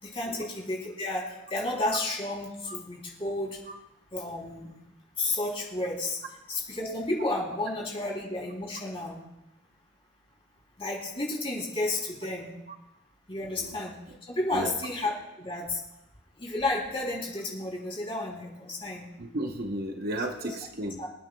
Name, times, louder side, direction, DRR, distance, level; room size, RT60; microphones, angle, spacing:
voice 1, 0.0-3.6 4.1-4.7 5.2-6.2 6.5-9.2 10.8-12.5 13.3-14.0 14.3-15.8 16.4-19.1 21.0-21.1, left 2 dB, 25° left, -2 dB, 3.1 m, -32 dB
voice 2, 19.2-21.0, right 1 dB, 45° right, 4 dB, 0.9 m, -34 dB
28.0 x 9.3 x 2.3 m, 0.92 s
head